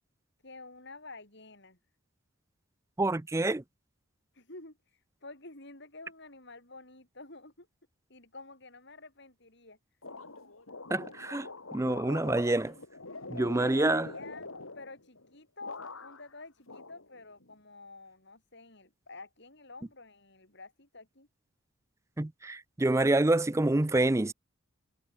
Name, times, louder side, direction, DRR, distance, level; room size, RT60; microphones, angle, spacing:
voice 1, 0.4-1.8 4.3-7.7 8.1-9.8 13.4-21.3, left 3 dB, 55° left, 6.1 m, -49 dB
voice 2, 3.0-3.6 10.9-12.8 13.3-14.1 22.2-24.3, right 2 dB, 15° right, 0.4 m, -27 dB
sound 1, 10.0-15.3 15.6-16.3 16.7-17.5, left 3 dB, 75° left, 4.1 m, -44 dB
head